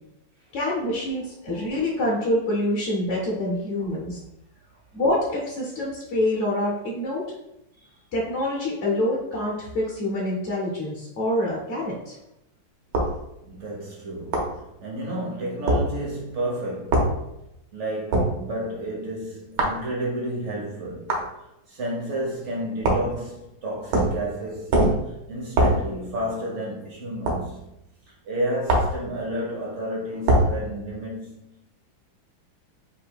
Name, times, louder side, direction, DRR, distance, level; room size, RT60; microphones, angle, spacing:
voice 1, 0.5-4.2 4.9-7.2 8.1-12.2, left 1 dB, 55° left, 0.9 m, -26 dB
sound 1, 12.9-13.2 14.3-14.5 15.7-15.8 16.9-17.1 18.1-18.3 19.6-19.8 21.1-21.3 22.8-23.1 23.9-24.2 24.7-25.0 25.6-25.8 27.3-27.4 28.7-29.0 30.3-30.5, right 1 dB, 65° right, 1.4 m, -21 dB
voice 2, 13.4-17.3 17.7-21.1 21.7-27.7 28.2-31.7, right 1 dB, 50° right, 1.0 m, -31 dB
3.6 x 2.6 x 4.6 m
omnidirectional pair, 2.2 m